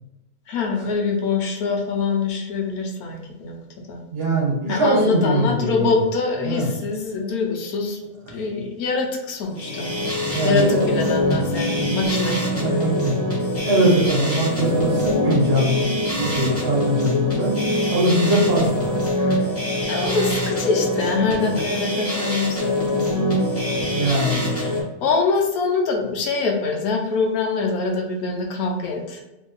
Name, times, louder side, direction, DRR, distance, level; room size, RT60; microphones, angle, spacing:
voice 1, 0.5-3.6 3.9-4.0 4.7-8.0 8.3-9.9 10.4-12.4 19.9-23.5 24.0-29.2, left 4 dB, 85° left, 1 dB, 1.2 m, -24 dB
voice 2, 4.1-6.0 6.4-6.7 10.3-10.8 11.5-11.9 12.6-13.3 13.6-15.8 16.2-17.5 17.9-19.3 23.9-24.8, right 1 dB, 45° right, -4 dB, 1.1 m, -22 dB
sound 1, 9.5-24.8, left 1 dB, 10° left, 1.0 m, -24 dB
2.9 x 2.8 x 3.8 m, 1.0 s
omnidirectional pair, 1.6 m